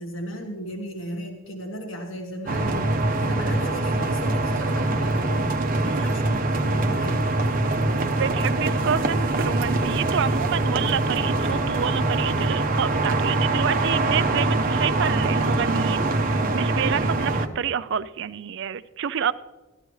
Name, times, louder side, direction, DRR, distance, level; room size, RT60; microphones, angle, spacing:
voice 1, 0.0-7.3, equal, 70° left, 2 dB, 1.5 m, -36 dB
sound 1, 2.5-17.5, right 2 dB, 45° right, 0.8 m, -23 dB
voice 2, 8.2-19.3, right 8 dB, 60° right, 14 dB, 0.4 m, -28 dB
14.0 x 12.5 x 3.2 m, 1.1 s
head